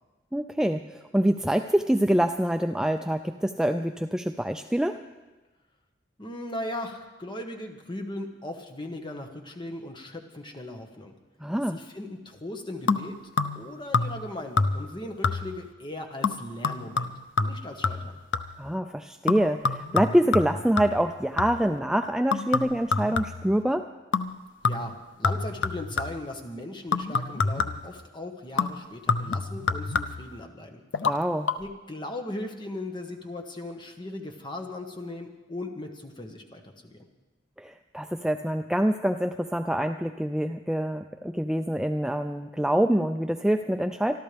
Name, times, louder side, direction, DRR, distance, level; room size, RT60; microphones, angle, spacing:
voice 1, 0.3-5.0 11.4-11.8 18.6-23.9 31.0-31.5 37.6-44.2, right 1 dB, 5° right, 6 dB, 0.4 m, -25 dB
voice 2, 6.2-11.1 11.7-13.2 13.5-17.1 17.4-18.2 24.6-30.8 31.6-37.1, left 1 dB, 25° left, 3 dB, 1.5 m, -38 dB
sound 1, 12.9-13.7 13.9-14.3 14.6-15.0 15.2-15.7 16.2-18.7 19.3-21.7 22.3-23.6 24.1-24.4 24.6-26.3 26.9-27.9 28.6-30.4 30.9-31.2 31.5-31.6, left 4 dB, 85° left, 0.7 m, -28 dB
26.0 x 12.5 x 3.5 m, 1.2 s
head